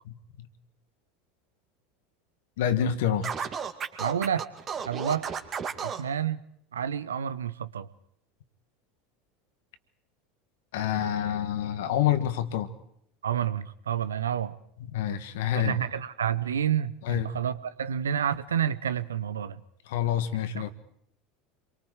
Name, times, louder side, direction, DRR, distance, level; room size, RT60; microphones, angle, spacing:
voice 1, 0.0-0.5 2.6-3.5 10.7-12.7 14.9-15.8 17.0-17.3 19.9-20.7, left 10 dB, 65° left, 11 dB, 1.6 m, -27 dB
Scratching (performance technique), 3.2-6.0, right 6 dB, 35° right, 2.3 m, -33 dB
voice 2, 4.0-4.5 4.9-5.3 5.8-6.4 6.7-7.9 13.2-14.6 15.5-19.6 20.6-20.7, right 8 dB, 80° right, 14 dB, 0.8 m, -29 dB
28.0 x 23.5 x 4.9 m, 0.70 s
figure-of-eight pair, 75°, 0 cm